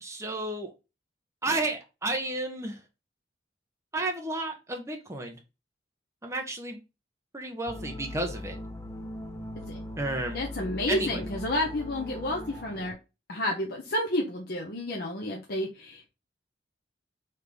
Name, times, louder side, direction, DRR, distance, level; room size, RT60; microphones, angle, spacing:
voice 1, 0.0-0.7 1.4-2.8 3.9-5.4 6.2-6.8 7.3-8.6 10.0-10.4 10.9-11.2, right 2 dB, 15° right, 1.0 m, -32 dB
sound 1, 7.7-12.9, left 1 dB, 15° left, 0.6 m, -40 dB
voice 2, 10.3-12.9 13.3-16.1, left 1 dB, 60° left, 0.9 m, -30 dB
4.2 x 3.6 x 3.4 m
head